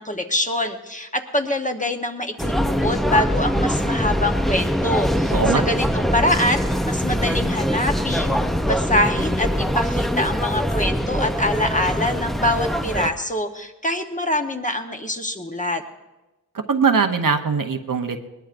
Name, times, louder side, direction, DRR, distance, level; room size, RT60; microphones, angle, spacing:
voice 1, 0.0-8.4 8.6-15.8, left 1 dB, 20° left, 4 dB, 1.0 m, -24 dB
sound 1, 2.4-13.1, equal, ahead, 0.6 m, -23 dB
voice 2, 5.3-5.6 16.7-18.2, right 5 dB, 60° right, 6 dB, 0.9 m, -20 dB
20.5 x 19.0 x 2.6 m, 1.1 s
wide cardioid pair, 65°, 37 cm